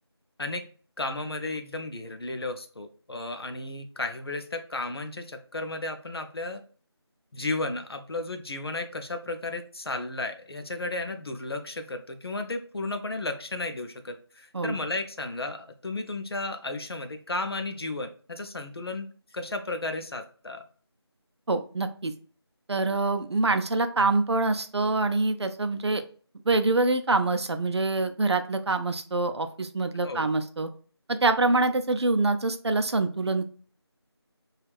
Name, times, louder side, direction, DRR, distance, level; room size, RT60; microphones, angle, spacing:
voice 1, 1.0-6.6 7.3-20.6 30.0-30.3, left 2 dB, 65° left, 6 dB, 0.5 m, -34 dB
voice 2, 21.5-22.1 22.7-26.0 26.5-30.7 31.1-33.4, right 3 dB, 75° right, 8 dB, 0.4 m, -25 dB
2.4 x 2.3 x 3.3 m, 0.42 s
figure-of-eight pair, 175°, 14 cm